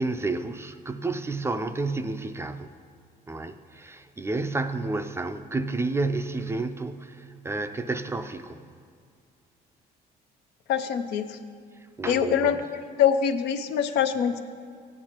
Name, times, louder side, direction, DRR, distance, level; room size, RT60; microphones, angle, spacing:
voice 1, 0.0-2.7 3.3-8.7 11.7-12.6, right 3 dB, 15° right, 0.4 m, -30 dB
voice 2, 10.7-11.4 12.1-12.5 13.0-14.4, left 8 dB, 80° left, 0.6 m, -24 dB
15.5 x 8.7 x 2.9 m
cardioid pair, 110°, 17 cm